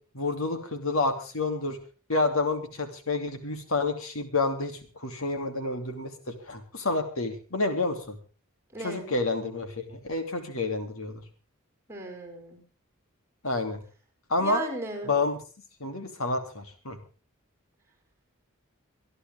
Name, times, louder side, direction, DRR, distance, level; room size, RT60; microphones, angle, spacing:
voice 1, 0.1-1.8 2.1-8.2 8.8-11.2 13.4-13.8 14.3-14.6 15.0-15.4 15.8-17.0, left 3 dB, 70° left, 6 dB, 2.9 m, -29 dB
voice 2, 8.7-9.1 11.9-12.6 14.4-15.2, right 2 dB, 10° right, 4 dB, 5.2 m, -35 dB
25.0 x 11.0 x 3.6 m, 0.35 s
head